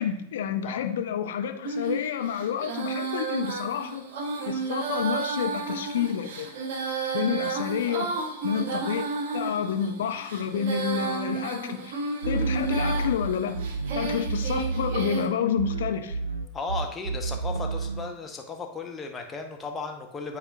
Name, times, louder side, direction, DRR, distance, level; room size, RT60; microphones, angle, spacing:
voice 1, 0.0-4.0 4.5-6.5 7.1-8.1 8.4-9.0 9.3-11.9 12.3-13.6 13.9-16.2, left 8 dB, 60° left, 6 dB, 0.6 m, -29 dB
Female singing, 1.6-15.3, right 4 dB, 50° right, 1.0 m, -32 dB
sound 1, 12.2-15.3 15.6-18.1, right 4 dB, 80° right, 0.4 m, -30 dB
voice 2, 16.5-20.4, left 4 dB, 15° left, 3 dB, 0.9 m, -35 dB
10.0 x 4.2 x 2.6 m, 0.79 s
figure-of-eight pair, 90°, 0 cm